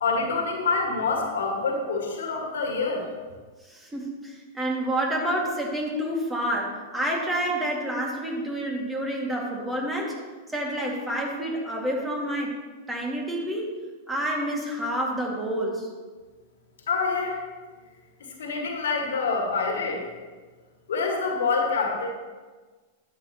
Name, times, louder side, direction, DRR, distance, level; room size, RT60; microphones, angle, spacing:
voice 1, 0.0-3.0 16.9-17.4 18.4-20.0 20.9-22.1, left 4 dB, 70° left, 1 dB, 1.9 m, -26 dB
voice 2, 3.6-10.2 10.5-12.6 12.9-13.7 14.1-15.9, right 1 dB, 10° right, -1 dB, 2.3 m, -28 dB
12.0 x 7.9 x 3.1 m, 1.4 s
hypercardioid pair, 100°, 0 cm